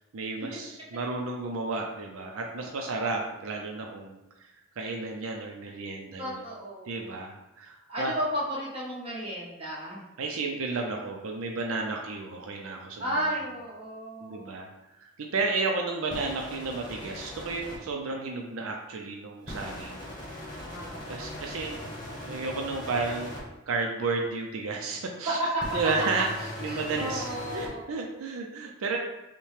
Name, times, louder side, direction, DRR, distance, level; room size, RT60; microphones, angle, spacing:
voice 1, 0.1-4.5 4.8-6.4 6.9-8.1 10.2-13.2 14.2-14.7 15.0-20.0 21.1-21.8 22.2-23.3 23.7-25.4 25.7-26.3 26.6-29.0, right 3 dB, 80° right, 1 dB, 0.5 m, -32 dB
voice 2, 6.2-7.2 7.9-10.0 13.0-14.5 20.6-21.5 21.8-21.9 25.3-25.6 26.7-27.8, equal, 30° right, -6 dB, 1.2 m, -33 dB
sound 1, 16.1-17.8 19.5-23.4 25.6-27.7, left 1 dB, 20° left, 1.1 m, -39 dB
5.6 x 2.2 x 3.2 m, 0.96 s
head